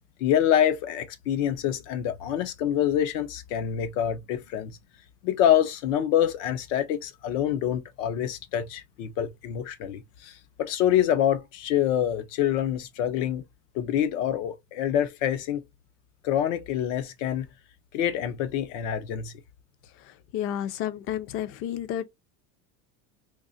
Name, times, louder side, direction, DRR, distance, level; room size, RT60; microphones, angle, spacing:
voice 1, 0.2-4.8 5.2-13.4 13.7-15.6 16.2-17.5 17.9-19.3, left 10 dB, 85° left, 0.8 m, -26 dB
voice 2, 20.0-22.1, left 10 dB, 40° left, 0.4 m, -31 dB
3.8 x 2.8 x 2.6 m
cardioid pair, 165°, 36 cm